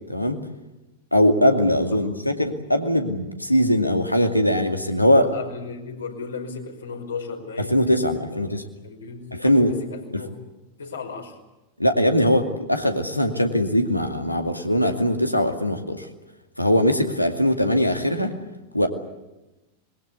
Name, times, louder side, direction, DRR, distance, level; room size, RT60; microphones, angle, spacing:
voice 1, 1.1-5.3 7.7-8.6 9.3-9.7 11.8-16.1 16.6-18.3 18.7-18.9, equal, 90° left, 5 dB, 2.4 m, -21 dB
voice 2, 5.1-7.8 8.3-8.4 8.8-10.3 10.8-11.4, left 5 dB, 70° left, 2 dB, 5.3 m, -35 dB
25.5 x 22.0 x 8.3 m, 1.0 s
figure-of-eight pair, 90°, 0 cm